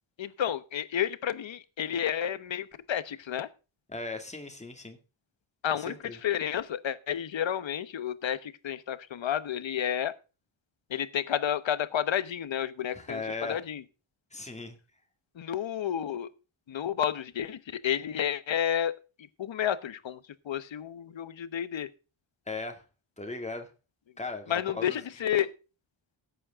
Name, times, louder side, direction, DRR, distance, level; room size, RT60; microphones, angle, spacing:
voice 1, 0.2-3.5 5.6-10.1 10.9-13.8 15.4-16.3 16.7-19.0 19.4-21.9 24.5-25.5, left 9 dB, 70° left, 15 dB, 1.1 m, -31 dB
voice 2, 3.9-5.0 5.8-6.2 12.9-13.6 14.3-14.8 22.5-22.8 23.2-23.7 24.2-25.0, left 3 dB, 15° left, 4 dB, 2.2 m, -37 dB
16.0 x 8.5 x 3.6 m, 0.32 s
wide cardioid pair, 165°, 47 cm